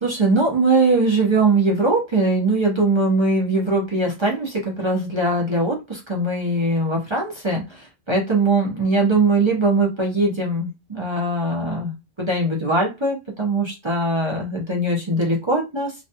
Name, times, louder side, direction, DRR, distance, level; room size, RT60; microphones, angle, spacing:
voice 1, 0.0-15.9, right 2 dB, 35° right, -2 dB, 0.5 m, -21 dB
2.5 x 2.2 x 2.7 m, 0.25 s
omnidirectional pair, 1.2 m